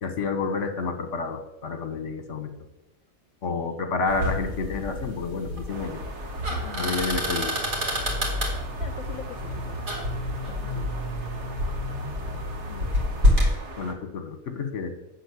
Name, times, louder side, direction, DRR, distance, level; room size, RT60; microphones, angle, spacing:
voice 1, 0.0-2.5 3.4-6.0 6.8-7.6 13.8-14.9, left 4 dB, 60° left, 9 dB, 1.4 m, -29 dB
voice 2, 3.5-3.9 6.5-7.0 8.8-9.8 10.5-11.0 12.7-12.9, left 7 dB, 80° left, 8 dB, 1.1 m, -43 dB
sound 1, 4.1-13.5, left 1 dB, 75° right, 3.1 m, -28 dB
sound 2, 5.7-13.9, right 3 dB, 55° right, 1.7 m, -42 dB
11.5 x 4.7 x 8.2 m, 0.88 s
omnidirectional pair, 1.5 m